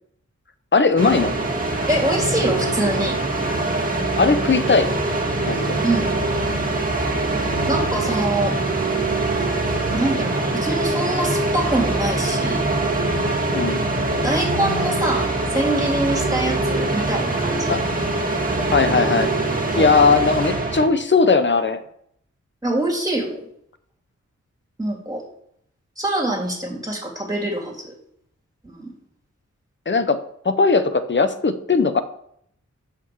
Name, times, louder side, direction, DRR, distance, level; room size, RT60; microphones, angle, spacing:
voice 1, 0.7-1.3 4.2-4.9 5.5-5.8 13.5-13.8 17.7-17.8 18.6-19.3 19.7-21.8 29.9-30.2 30.4-32.0, left 4 dB, 40° left, 11 dB, 0.8 m, -18 dB
sound 1, 1.0-20.9, right 2 dB, 30° right, 1.6 m, -23 dB
voice 2, 1.9-3.2 5.8-6.1 7.7-8.6 9.9-12.7 14.2-17.7 19.8-19.9 22.6-23.4 24.8-25.2 26.0-27.9 28.6-28.9, right 1 dB, 10° right, -2 dB, 3.1 m, -24 dB
6.0 x 5.8 x 7.1 m, 0.69 s
wide cardioid pair, 70°, 30 cm